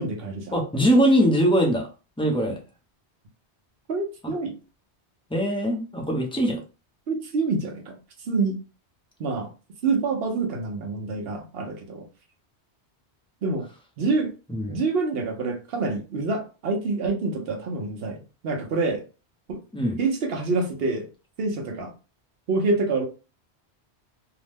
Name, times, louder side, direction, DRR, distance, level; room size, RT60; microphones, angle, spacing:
voice 1, 0.0-0.5 2.5-2.6 3.9-4.5 7.1-8.0 8.3-8.6 9.2-9.5 9.8-12.1 13.4-13.7 14.0-14.3 14.7-19.0 19.5-19.6 20.0-21.1 21.4-21.9 22.5-23.0, right 3 dB, 65° right, 0.9 m, -26 dB
voice 2, 0.5-1.9 2.2-2.6 5.3-6.6 14.5-14.8 19.7-20.0, equal, 5° left, 0.5 m, -21 dB
2.8 x 2.0 x 3.3 m
omnidirectional pair, 1.1 m